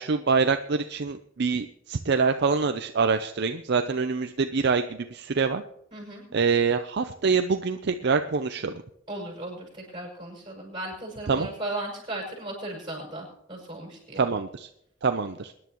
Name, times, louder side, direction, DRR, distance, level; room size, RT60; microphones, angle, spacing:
voice 1, 0.0-5.6 6.3-8.7 11.3-11.5 14.2-14.7 15.0-15.5, right 5 dB, 55° right, 8 dB, 0.5 m, -25 dB
voice 2, 5.9-6.3 9.1-14.2, right 1 dB, 25° right, -2 dB, 6.1 m, -36 dB
23.5 x 10.5 x 3.0 m, 0.76 s
head